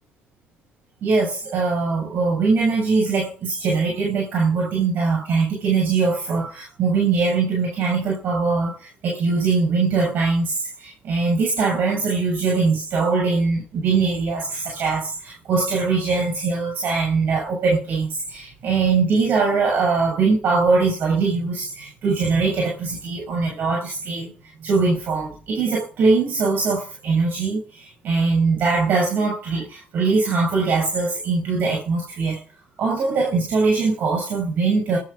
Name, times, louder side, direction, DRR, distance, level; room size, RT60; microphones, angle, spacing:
voice 1, 1.0-24.3 24.6-32.4 32.8-35.0, right 4 dB, 55° right, 7.3 m, -21 dB
23.0 x 10.0 x 5.1 m
cardioid pair, 105°, 4 cm